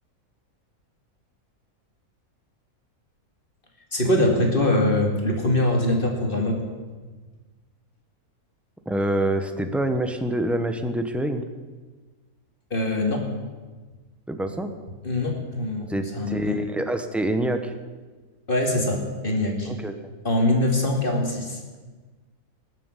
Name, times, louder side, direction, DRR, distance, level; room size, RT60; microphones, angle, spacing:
voice 1, 3.9-6.6 12.7-13.3 15.0-16.6 18.5-19.7 20.2-21.6, left 1 dB, 35° left, 1 dB, 2.5 m, -23 dB
voice 2, 8.9-11.5 14.3-14.7 15.9-17.7 19.6-20.0, right 1 dB, ahead, 7 dB, 0.8 m, -26 dB
19.5 x 7.5 x 8.2 m, 1.3 s
omnidirectional pair, 1.6 m